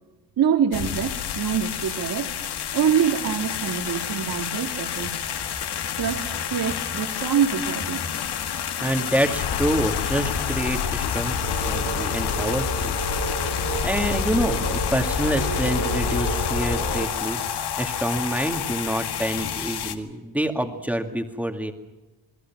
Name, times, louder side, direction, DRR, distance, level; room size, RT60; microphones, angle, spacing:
voice 1, 0.4-2.3 2.7-5.1 6.0-8.1, right 8 dB, 45° right, 6 dB, 2.2 m, -25 dB
sound 1, 0.7-20.0, left 9 dB, 55° left, 2.0 m, -30 dB
voice 2, 8.8-12.9 13.4-17.4 17.8-21.7, right 1 dB, 5° right, 4 dB, 2.1 m, -27 dB
sound 2, 9.4-17.0, left 6 dB, 75° left, 2.6 m, -29 dB
sound 3, 11.4-17.1, right 10 dB, 90° right, 1.7 m, -34 dB
28.0 x 21.0 x 6.0 m, 1.1 s
cardioid pair, 150°, 48 cm